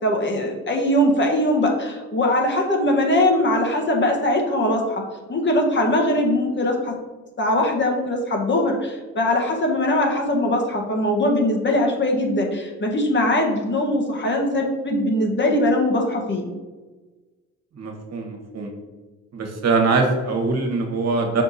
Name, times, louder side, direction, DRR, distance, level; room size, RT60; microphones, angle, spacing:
voice 1, 0.0-5.0 5.3-7.0 7.4-16.5, left 1 dB, 40° left, 1 dB, 1.5 m, -21 dB
voice 2, 17.7-18.7 19.3-21.4, right 3 dB, 60° right, 3 dB, 1.5 m, -22 dB
6.1 x 4.6 x 4.2 m, 1.3 s
cardioid pair, 90°, 30 cm